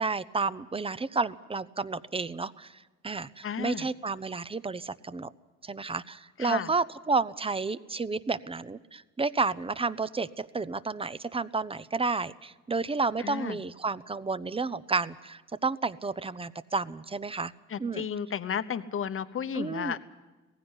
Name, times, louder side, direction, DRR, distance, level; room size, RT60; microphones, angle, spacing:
voice 1, 0.0-5.3 5.6-17.5 17.8-18.1 19.5-20.0, right 4 dB, 20° right, 16 dB, 0.6 m, -31 dB
voice 2, 3.4-3.9 6.4-6.7 13.2-13.6 17.7-20.0, left 8 dB, 45° left, 12 dB, 1.0 m, -33 dB
17.5 x 15.5 x 9.8 m, 1.2 s
cardioid pair, 90°, 30 cm